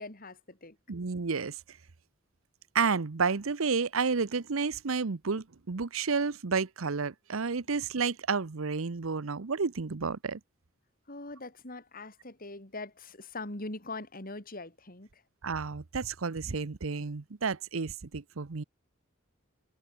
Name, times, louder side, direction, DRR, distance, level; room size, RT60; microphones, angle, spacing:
voice 1, 0.0-0.8 11.1-15.2, left 2 dB, 45° left, 4.0 m, -42 dB
voice 2, 0.9-1.8 2.7-10.4 15.4-18.6, right 5 dB, 90° right, 0.8 m, -31 dB
head